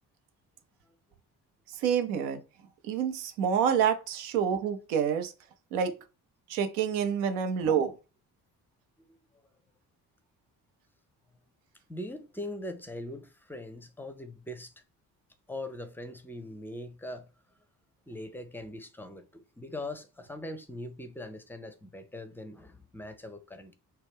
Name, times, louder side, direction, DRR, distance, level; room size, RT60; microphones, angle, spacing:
voice 1, 1.8-2.4 2.9-5.3 5.7-5.9 6.5-7.9, right 8 dB, 75° right, 0.6 m, -27 dB
voice 2, 11.9-14.7 15.5-17.3 18.1-23.7, left 1 dB, 5° left, 0.5 m, -41 dB
2.9 x 2.2 x 3.5 m
hypercardioid pair, 45°, 48 cm